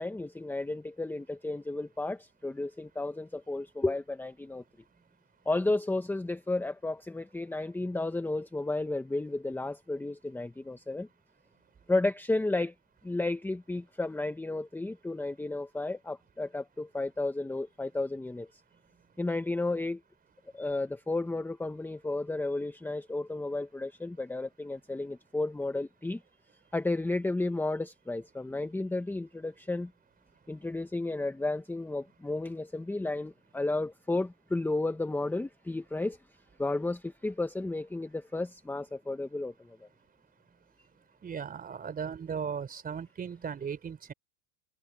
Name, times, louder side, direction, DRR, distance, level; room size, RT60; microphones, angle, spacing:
voice 1, 0.0-4.6 5.4-11.1 11.9-12.7 13.0-18.6 19.2-20.0 20.5-26.2 26.7-29.9 30.5-36.2 36.6-39.9, left 2 dB, 5° left, 1.4 m, -33 dB
voice 2, 41.2-44.1, right 7 dB, 20° right, 4.2 m, -37 dB
supercardioid pair, 120°, 40 cm